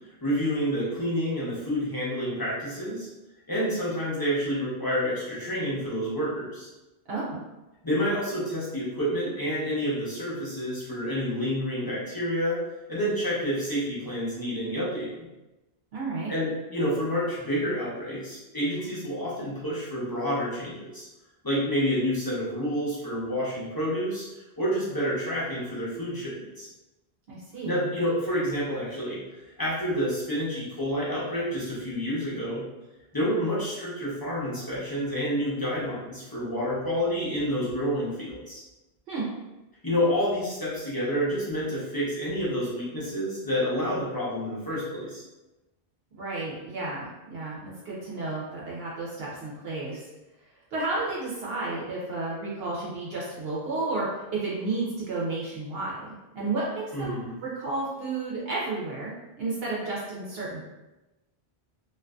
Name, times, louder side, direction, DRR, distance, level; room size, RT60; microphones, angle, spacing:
voice 1, 0.2-3.1 3.5-6.7 7.8-12.6 12.9-15.2 16.3-21.1 21.4-24.3 24.6-26.7 27.6-32.6 33.1-38.6 39.8-45.2 56.9-57.3, equal, 25° left, -8 dB, 0.7 m, -29 dB
voice 2, 15.9-16.3 27.3-27.9 39.1-39.3 46.1-50.1 50.7-60.7, right 3 dB, 75° right, -5 dB, 0.8 m, -32 dB
2.5 x 2.5 x 2.2 m, 1.0 s
omnidirectional pair, 1.0 m